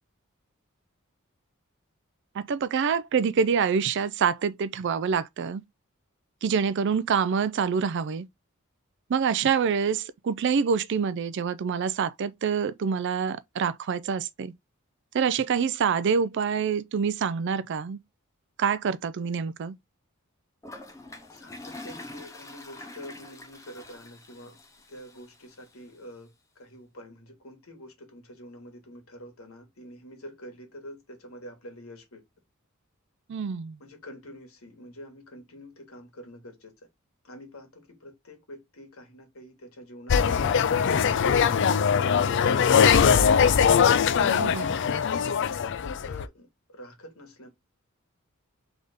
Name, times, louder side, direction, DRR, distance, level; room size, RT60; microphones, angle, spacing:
voice 1, 2.3-5.6 6.4-8.3 9.1-14.5 15.1-18.0 18.6-19.7 33.3-33.8 44.2-44.7, right 6 dB, 55° right, 0.4 m, -26 dB
Toilet flush, 20.6-25.7, left 2 dB, 15° left, 0.8 m, -45 dB
voice 2, 21.3-24.6 24.9-32.2 33.8-36.7 37.2-41.0 45.2-47.5, equal, 80° left, 1.7 m, -46 dB
sound 1, 40.1-46.2, left 7 dB, 60° left, 0.4 m, -21 dB
3.9 x 3.5 x 3.5 m
head